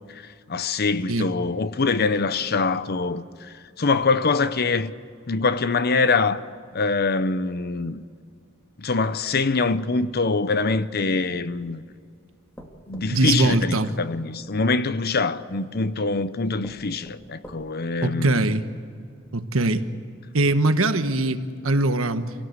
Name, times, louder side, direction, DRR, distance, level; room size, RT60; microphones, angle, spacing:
voice 1, 0.1-4.9 5.3-6.4 6.7-8.0 8.8-11.8 12.9-18.4, left 4 dB, 50° left, 0.8 m, -24 dB
sound 1, 10.9-11.8 12.6-14.5 15.5-15.6 16.2-16.3 16.6-18.0 18.5-18.6 18.9-19.0, equal, 10° left, 2.1 m, -46 dB
voice 2, 13.1-13.9 18.0-18.6 19.3-19.8 20.3-22.3, right 2 dB, 80° right, 1.3 m, -22 dB
27.0 x 17.5 x 8.1 m
head